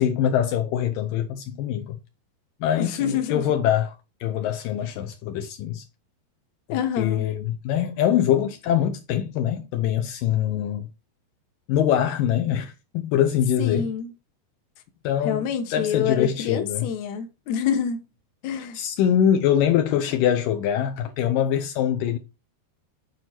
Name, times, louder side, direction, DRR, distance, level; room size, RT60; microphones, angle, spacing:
voice 1, 0.0-2.0 2.6-3.9 4.2-5.8 6.7-10.9 11.7-13.9 15.0-15.5 15.7-16.9 18.7-22.2, left 10 dB, 90° left, 1.9 m, -23 dB
voice 2, 2.8-3.4 6.7-7.3 13.6-14.1 15.2-18.0 18.4-18.8, left 8 dB, 70° left, 1.8 m, -26 dB
9.1 x 4.5 x 4.3 m
omnidirectional pair, 4.8 m